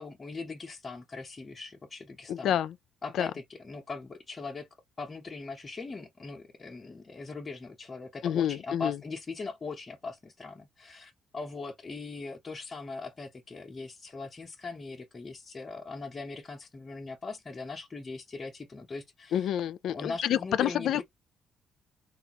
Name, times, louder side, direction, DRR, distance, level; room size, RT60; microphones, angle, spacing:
voice 1, 0.0-2.6 3.0-4.7 5.0-19.5 19.9-21.0, left 4 dB, 30° left, 0.7 m, -40 dB
voice 2, 2.3-2.7 3.2-3.3 8.2-9.0 19.3-21.0, left 10 dB, 75° left, 0.3 m, -28 dB
3.3 x 2.4 x 2.8 m
cardioid pair, 90°, 0 cm